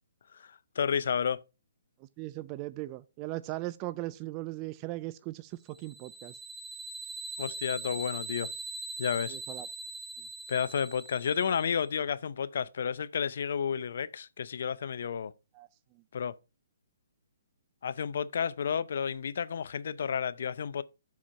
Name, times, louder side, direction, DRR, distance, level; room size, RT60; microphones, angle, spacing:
voice 1, 0.8-1.4 7.4-8.5 9.0-9.4 10.5-15.3 16.1-16.4 17.8-20.8, left 7 dB, 60° left, 0.6 m, -31 dB
voice 2, 2.2-5.5 5.8-6.3 9.3-9.7 15.6-15.7, right 18 dB, 25° right, 0.3 m, -38 dB
sound 1, 5.7-11.7, right 2 dB, ahead, 0.7 m, -41 dB
7.3 x 4.5 x 5.1 m
hypercardioid pair, 160°, 0 cm